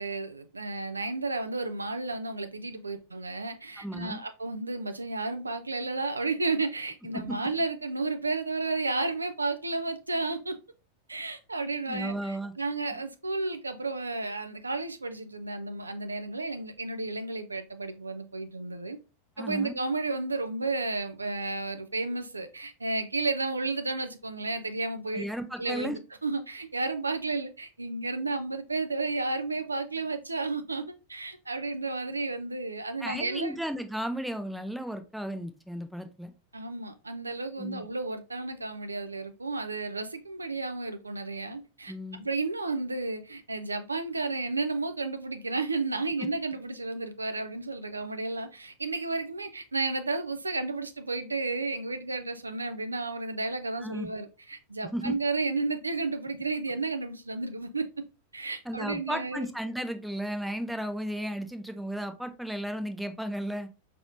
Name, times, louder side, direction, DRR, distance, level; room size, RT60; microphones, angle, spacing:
voice 1, 0.0-10.6 11.1-19.0 19.4-25.3 25.6-33.5 36.5-41.9 42.2-57.8 58.3-59.5, right 3 dB, 80° right, 0.4 m, -32 dB
voice 2, 3.8-4.2 7.1-7.4 11.9-12.5 12.9-13.0 19.4-19.8 25.1-26.0 33.0-36.3 37.6-37.8 41.9-42.3 53.8-54.1 54.9-55.1 58.6-63.7, right 1 dB, ahead, 0.5 m, -34 dB
4.9 x 3.4 x 2.5 m
figure-of-eight pair, 90°, 0 cm